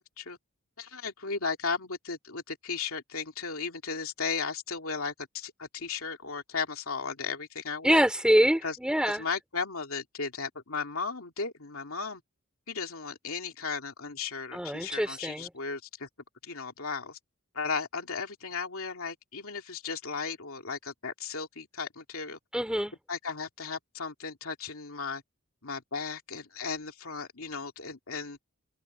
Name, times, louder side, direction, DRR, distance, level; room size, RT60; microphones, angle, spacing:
voice 1, 0.8-8.0 8.6-8.8 9.0-12.2 12.7-16.1 16.4-17.2 17.5-22.4 23.1-25.2 25.6-28.4, left 5 dB, 70° left, 2.8 m, -35 dB
voice 2, 7.8-9.2 14.5-15.5 22.5-22.9, equal, 5° right, 3.4 m, -25 dB
head